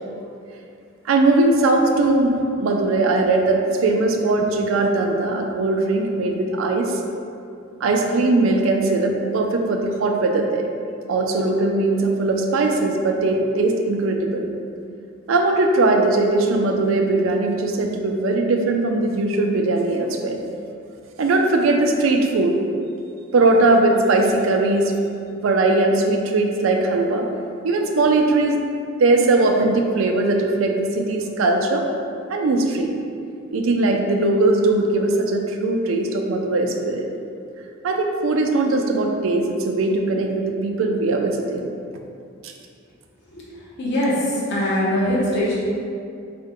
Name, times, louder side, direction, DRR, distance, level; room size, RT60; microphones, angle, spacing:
voice 1, 1.1-7.0 7.8-10.7 11.1-14.5 15.3-20.4 21.2-22.6 23.3-25.0 25.4-27.3 27.6-28.6 29.0-31.9 32.3-33.0 33.5-37.1 37.8-41.7 42.4-42.5, right 2 dB, 70° right, 3 dB, 0.4 m, -20 dB
voice 2, 43.8-45.6, left 1 dB, 55° left, -7 dB, 0.8 m, -22 dB
4.5 x 2.2 x 3.6 m, 2.4 s
head